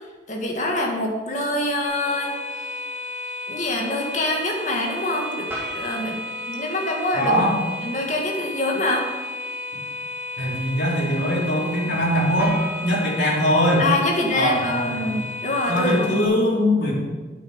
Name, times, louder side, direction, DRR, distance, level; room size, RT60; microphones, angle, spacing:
voice 1, 0.3-2.3 3.5-5.5 5.7-6.2 6.5-7.4 7.8-9.0 13.8-16.2, left 1 dB, 40° left, 0 dB, 1.9 m, -25 dB
sound 1, 1.8-16.2, left 2 dB, 70° right, 2.9 m, -33 dB
sound 2, 5.5-7.6 12.4-15.6, right 1 dB, 15° right, 3.2 m, -40 dB
voice 2, 7.1-7.6 10.4-13.9 14.3-15.2 15.7-16.9, equal, 80° left, -5 dB, 3.9 m, -21 dB
9.3 x 8.8 x 5.3 m, 1.3 s
head